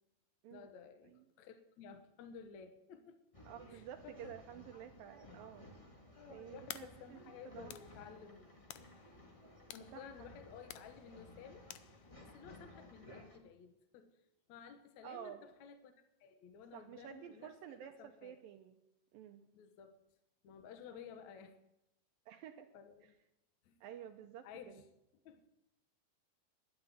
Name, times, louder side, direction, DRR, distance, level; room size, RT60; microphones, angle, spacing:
voice 1, 0.5-3.2 3.7-4.3 6.2-8.6 9.7-11.8 12.2-14.2 14.5-15.9 16.2-18.3 19.5-20.0 20.4-21.6 22.7-23.1 23.7-23.8 24.4-24.8 25.3-25.5, left 7 dB, 65° left, 8 dB, 2.1 m, -54 dB
Male speech man speaking / Chatter / Rattle, 3.3-13.4, left 1 dB, 35° left, 0.5 m, -58 dB
voice 2, 3.5-5.7 6.3-7.2 7.4-7.7 9.9-10.3 15.0-15.4 16.7-18.8 19.1-19.5 22.3-22.7 23.0-23.1 23.8-24.8, right 10 dB, 75° right, 6 dB, 2.4 m, -51 dB
sound 1, 6.7-12.4, left 13 dB, 85° left, 1.8 m, -55 dB
12.0 x 10.5 x 9.2 m, 0.88 s
omnidirectional pair, 4.4 m